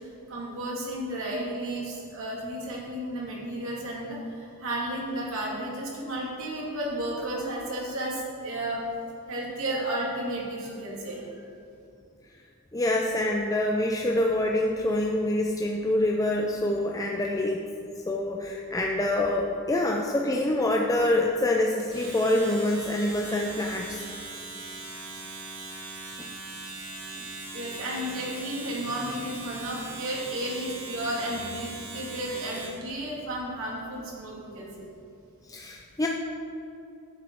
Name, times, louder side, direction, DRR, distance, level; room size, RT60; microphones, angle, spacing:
voice 1, 0.0-8.8 9.3-11.5 27.5-34.9, right 1 dB, 60° right, -4 dB, 2.3 m, -33 dB
voice 2, 12.7-17.6 18.1-24.0 26.2-26.3 35.5-36.1, left 1 dB, 15° left, 0 dB, 0.4 m, -26 dB
Domestic sounds home sounds, 21.8-32.8, right 2 dB, 80° right, 2.5 m, -40 dB
9.8 x 7.3 x 4.6 m, 2.6 s
head